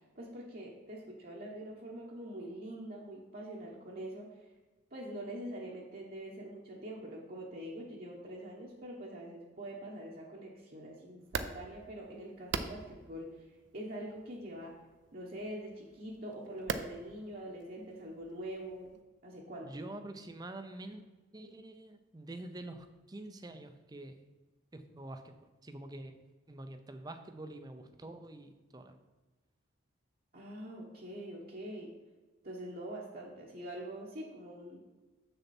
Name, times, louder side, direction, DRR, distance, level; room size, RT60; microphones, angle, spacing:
voice 1, 0.2-4.3 4.9-13.3 13.7-14.8 15.1-19.0 19.2-19.8 30.3-31.9 32.4-34.8, right 1 dB, 50° right, -3 dB, 1.1 m, -44 dB
sound 1, 11.2-19.0, right 5 dB, 65° right, 0.5 m, -44 dB
voice 2, 19.6-21.1 21.3-24.1 24.7-26.2 26.5-29.0, right 1 dB, 20° right, 8 dB, 0.5 m, -46 dB
7.1 x 6.6 x 4.2 m, 1.2 s
head